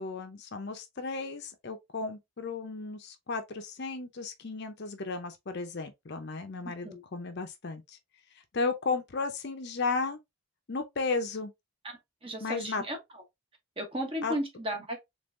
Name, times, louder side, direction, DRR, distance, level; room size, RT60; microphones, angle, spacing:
voice 1, 0.0-8.0 8.5-10.2 10.7-11.5 12.4-12.8 14.2-14.3, left 4 dB, 50° left, 0.6 m, -34 dB
voice 2, 11.8-13.0 13.8-15.0, right 1 dB, 25° right, 1.2 m, -35 dB
3.6 x 3.3 x 2.5 m
head